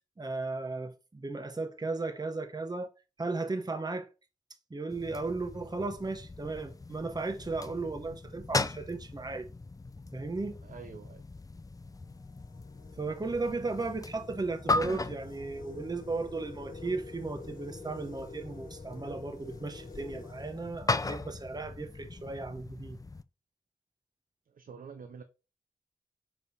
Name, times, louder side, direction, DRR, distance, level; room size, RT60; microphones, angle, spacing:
voice 1, 0.2-2.9 3.2-4.1 4.7-9.5 10.1-10.5 13.0-23.0, right 3 dB, 30° right, 0.9 m, -35 dB
sound 1, 4.9-23.2, left 3 dB, 25° left, 0.5 m, -38 dB
voice 2, 10.6-11.2 24.5-25.2, right 6 dB, 80° right, 0.6 m, -47 dB
sound 2, 11.7-21.5, left 4 dB, 75° left, 1.3 m, -51 dB
6.7 x 3.5 x 4.1 m
cardioid pair, 45°, 14 cm